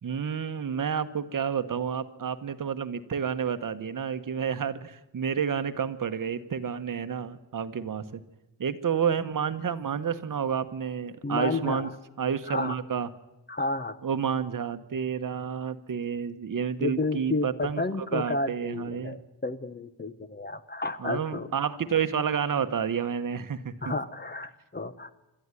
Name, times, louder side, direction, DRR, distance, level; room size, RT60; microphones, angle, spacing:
voice 1, 0.0-8.2 8.6-11.9 12.2-13.1 14.0-19.2 21.0-23.9, right 7 dB, 45° right, 11 dB, 1.1 m, -30 dB
voice 2, 11.2-11.9 12.5-12.8 13.5-14.0 16.8-21.5 23.8-25.1, left 3 dB, 25° left, 12 dB, 0.8 m, -31 dB
27.5 x 12.5 x 9.7 m, 0.98 s
wide cardioid pair, 175°, 45 cm